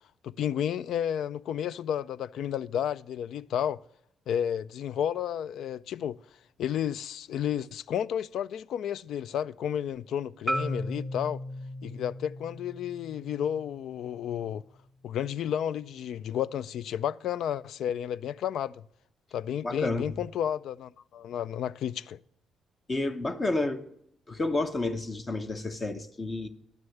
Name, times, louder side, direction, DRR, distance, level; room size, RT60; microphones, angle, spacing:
voice 1, 0.2-3.8 4.3-6.2 6.6-11.4 11.8-14.6 15.0-18.8 19.3-22.2, left 9 dB, 75° left, 0.3 m, -32 dB
Marimba xylophone, 10.5-14.6, equal, 5° left, 1.2 m, -37 dB
voice 2, 19.6-20.1 22.9-23.8 24.3-26.5, left 2 dB, 30° left, 0.9 m, -30 dB
11.5 x 6.4 x 7.1 m
cardioid pair, 90°, 0 cm